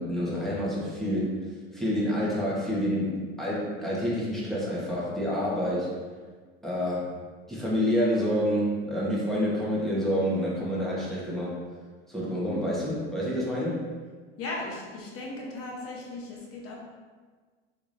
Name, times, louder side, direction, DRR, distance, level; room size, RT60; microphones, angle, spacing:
voice 1, 0.0-5.9 6.6-7.2 7.5-11.5 12.1-13.9, equal, ahead, -7 dB, 1.3 m, -28 dB
voice 2, 14.4-16.8, left 2 dB, 50° left, -2 dB, 1.1 m, -37 dB
3.6 x 3.2 x 2.7 m, 1.5 s
hypercardioid pair, 90°, 30 cm